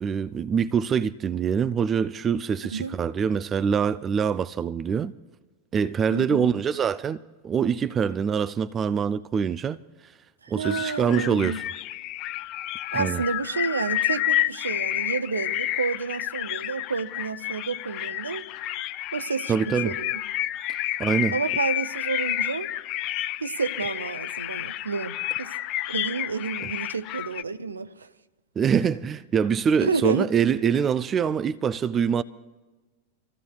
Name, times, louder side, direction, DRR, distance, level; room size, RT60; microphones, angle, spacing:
voice 1, 0.0-5.1 5.7-9.8 10.5-11.6 12.9-13.2 19.5-20.0 20.7-21.4 28.6-32.2, right 7 dB, 25° right, 0.4 m, -24 dB
voice 2, 6.1-6.5 10.4-11.6 12.9-18.5 19.1-20.1 21.3-22.7 23.4-25.5 25.9-28.1 29.8-30.3, right 4 dB, 75° right, 0.6 m, -30 dB
sound 1, 10.6-27.4, left 14 dB, 40° left, 0.4 m, -30 dB
28.5 x 15.0 x 2.3 m
figure-of-eight pair, 90°, 0 cm